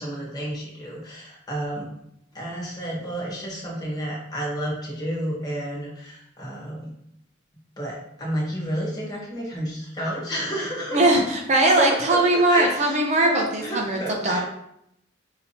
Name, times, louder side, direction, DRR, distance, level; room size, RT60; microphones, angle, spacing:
voice 1, 0.0-1.9 2.3-6.9 7.8-11.2 11.8-14.4, equal, 20° left, -4 dB, 1.2 m, -31 dB
voice 2, 10.9-14.4, right 2 dB, 35° right, 1 dB, 0.6 m, -20 dB
5.6 x 2.8 x 2.9 m, 0.77 s
head